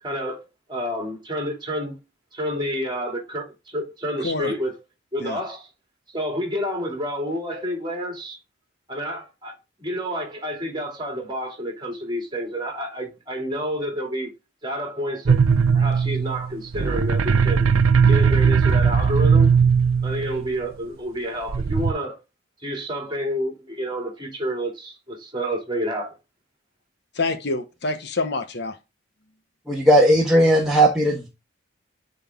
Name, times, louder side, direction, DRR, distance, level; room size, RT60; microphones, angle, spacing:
voice 1, 0.0-2.0 2.3-4.8 5.1-5.7 6.1-8.4 8.9-14.3 14.6-15.4 15.7-17.7 18.1-19.5 20.0-22.2 22.6-26.1, equal, 20° right, 2.6 m, -29 dB
sound 1, 15.3-20.5 21.5-21.9, right 6 dB, 90° right, 0.6 m, -18 dB
voice 2, 27.1-28.8, left 3 dB, 55° left, 0.9 m, -27 dB
voice 3, 29.7-31.3, right 1 dB, ahead, 1.4 m, -17 dB
10.5 x 4.0 x 3.6 m
head